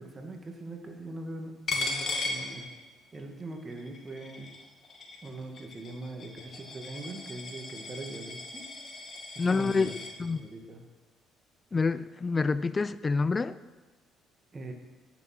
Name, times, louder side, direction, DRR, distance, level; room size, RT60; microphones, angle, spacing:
voice 1, 0.0-2.7 3.1-4.5 5.2-8.6 9.4-9.9 10.3-10.8 14.5-14.7, right 2 dB, 30° right, 3 dB, 2.1 m, -41 dB
Coin (dropping), 1.7-3.2 3.5-10.1, left 3 dB, 50° left, 2.3 m, -37 dB
voice 2, 9.4-10.5 11.7-13.6, left 4 dB, 30° left, 16 dB, 0.5 m, -27 dB
11.5 x 9.2 x 6.1 m, 1.3 s
cardioid pair, 85°, 0 cm